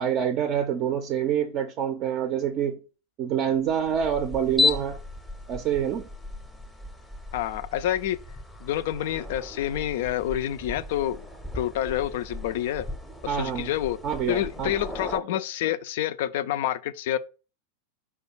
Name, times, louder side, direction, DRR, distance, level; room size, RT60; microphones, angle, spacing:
voice 1, 0.0-2.8 3.2-5.0 5.5-6.1 13.3-13.7 14.0-14.7, right 9 dB, 35° right, 0.5 m, -26 dB
sound 1, 3.6-15.2, left 3 dB, 5° left, 0.6 m, -34 dB
voice 2, 7.3-8.2 8.6-11.3 11.5-12.9 13.2-14.0 14.3-17.2, left 12 dB, 55° left, 0.3 m, -28 dB
4.8 x 2.2 x 4.6 m
figure-of-eight pair, 90°, 0 cm